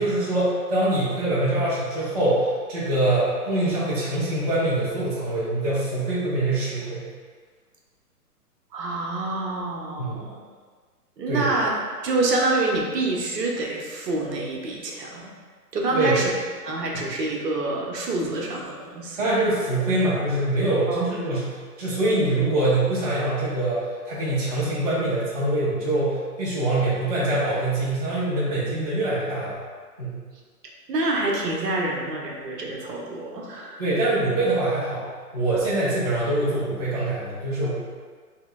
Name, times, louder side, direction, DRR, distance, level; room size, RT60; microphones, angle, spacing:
voice 1, 0.0-7.1 10.0-10.2 11.3-11.5 15.9-16.2 16.9-17.0 19.2-29.5 30.0-30.2 33.8-35.0 35.3-37.7, right 2 dB, 25° right, -9 dB, 0.8 m, -24 dB
voice 2, 8.7-10.4 11.2-15.3 15.7-16.3 16.6-19.2 20.9-21.0 30.9-33.8, right 2 dB, 85° right, -2 dB, 0.9 m, -27 dB
5.3 x 2.2 x 2.3 m, 1.5 s
hypercardioid pair, 165°, 48 cm